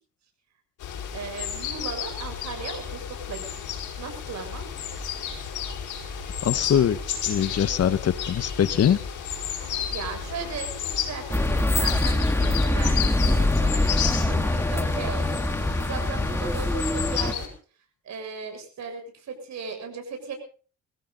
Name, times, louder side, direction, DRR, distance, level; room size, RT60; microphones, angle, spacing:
sound 1, 0.8-17.5, left 9 dB, 80° left, 5.1 m, -33 dB
voice 1, 1.1-4.6 9.9-17.5 18.0-20.4, right 5 dB, 65° right, 5 dB, 7.0 m, -37 dB
sound 2, 4.9-13.9, right 2 dB, 35° right, 7.8 m, -44 dB
voice 2, 6.4-7.0 7.3-9.0, left 9 dB, 55° left, 15 dB, 1.2 m, -22 dB
sound 3, 11.3-17.3, left 1 dB, 10° left, 1.8 m, -24 dB
23.0 x 15.5 x 4.0 m, 0.39 s
cardioid pair, 90°, 30 cm